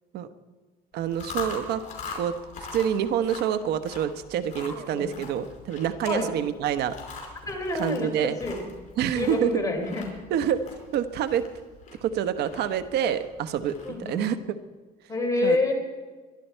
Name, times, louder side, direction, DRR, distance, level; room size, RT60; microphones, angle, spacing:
voice 1, 0.9-1.8 2.1-7.0 7.7-8.4 9.0-9.6 10.3-10.6 10.9-11.4 12.0-14.4 15.4-15.6, right 9 dB, 75° right, 12 dB, 1.0 m, -27 dB
Chewing mastication, 1.0-14.2, left 4 dB, 45° left, 4.8 m, -42 dB
voice 2, 4.7-5.1 6.0-6.3 7.5-8.7 9.1-10.0 13.8-14.3 15.1-15.7, left 2 dB, 20° left, 2 dB, 3.8 m, -28 dB
22.5 x 12.0 x 4.5 m, 1.4 s
cardioid pair, 110°, 17 cm